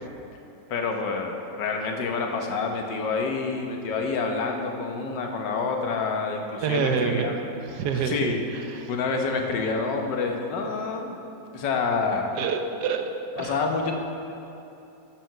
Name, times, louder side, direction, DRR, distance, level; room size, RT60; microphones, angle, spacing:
voice 1, 0.7-7.3 8.0-8.4 8.9-11.2 11.5-12.3 13.4-13.9, left 4 dB, 75° left, 3 dB, 1.6 m, -27 dB
voice 2, 6.6-7.4 7.6-8.9 12.3-13.0 13.4-13.6, right 6 dB, 65° right, 6 dB, 1.3 m, -27 dB
12.0 x 7.0 x 5.6 m, 2.8 s
omnidirectional pair, 2.0 m